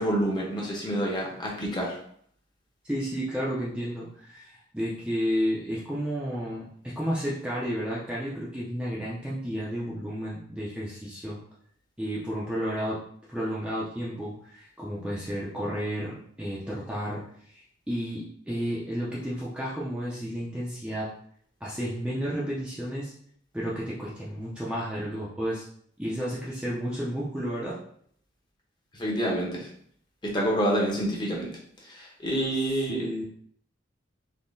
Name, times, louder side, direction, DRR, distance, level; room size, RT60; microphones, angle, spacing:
voice 1, 0.0-2.0 28.9-29.7 30.2-31.5 31.8-33.1, right 1 dB, 25° left, -3 dB, 0.8 m, -28 dB
voice 2, 2.8-11.4 12.0-13.0 13.3-17.2 17.5-21.1 21.6-23.1 23.5-25.6 26.0-27.8 32.9-33.2, equal, 5° right, -7 dB, 0.5 m, -32 dB
3.6 x 2.8 x 2.6 m, 0.63 s
head